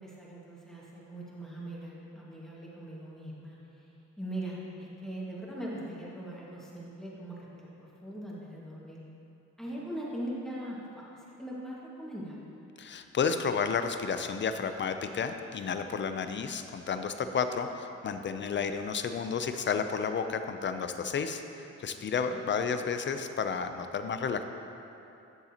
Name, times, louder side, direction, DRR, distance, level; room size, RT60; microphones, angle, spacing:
voice 1, 0.0-3.6 4.2-9.0 9.6-12.4 22.2-22.5, right 1 dB, ahead, -6 dB, 1.8 m, -41 dB
voice 2, 12.8-24.4, left 6 dB, 40° left, 8 dB, 0.5 m, -32 dB
12.0 x 6.9 x 2.9 m, 2.8 s
cardioid pair, 100°, 29 cm